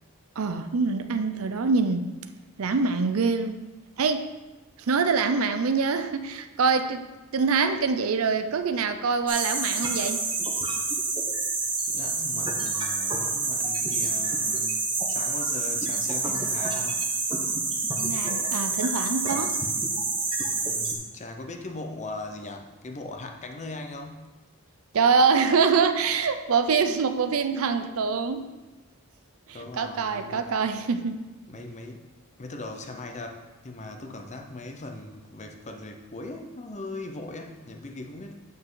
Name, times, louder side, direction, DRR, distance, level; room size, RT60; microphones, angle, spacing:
voice 1, 0.4-2.1 2.6-3.5 4.0-4.3 4.9-10.2 18.0-19.6 24.9-28.5 29.7-31.3, right 5 dB, 75° right, 9 dB, 0.5 m, -24 dB
sound 1, 9.3-20.9, right 3 dB, 25° right, 1.0 m, -28 dB
voice 2, 11.9-14.7 15.1-17.0 20.7-24.3 29.5-30.6 31.5-32.0 32.4-38.3, left 2 dB, 35° left, 4 dB, 0.7 m, -39 dB
8.0 x 5.5 x 3.9 m, 1.2 s
head